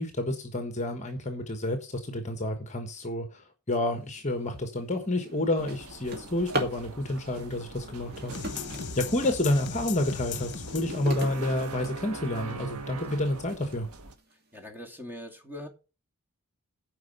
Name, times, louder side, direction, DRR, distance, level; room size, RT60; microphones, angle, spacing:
voice 1, 0.0-8.6 8.9-13.9, left 1 dB, 30° left, 1.3 m, -29 dB
Drawer open or close, 4.2-4.4 4.9-6.9 7.9-9.5 10.0-12.5 13.1-13.2 13.7-13.8 14.2-14.6, equal, 45° right, 2.5 m, -38 dB
sound 1, 5.6-14.1, right 3 dB, 85° right, 1.4 m, -43 dB
sound 2, 8.3-11.7, left 5 dB, 50° left, 1.3 m, -38 dB
voice 2, 14.5-15.7, left 1 dB, 10° right, 2.5 m, -41 dB
9.5 x 5.5 x 8.1 m
head